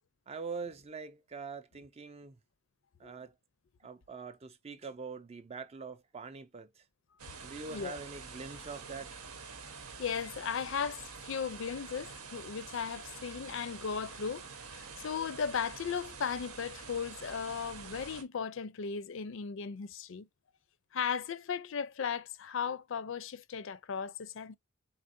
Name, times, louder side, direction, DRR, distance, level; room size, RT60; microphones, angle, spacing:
voice 1, 0.3-2.4 3.0-3.3 3.8-6.8 7.4-9.2, right 4 dB, 30° right, 0.4 m, -44 dB
sound 1, 7.2-18.2, right 5 dB, 90° right, 1.0 m, -47 dB
voice 2, 7.7-8.0 10.0-20.3 20.9-24.6, left 6 dB, 60° left, 0.4 m, -36 dB
4.1 x 3.8 x 2.5 m
head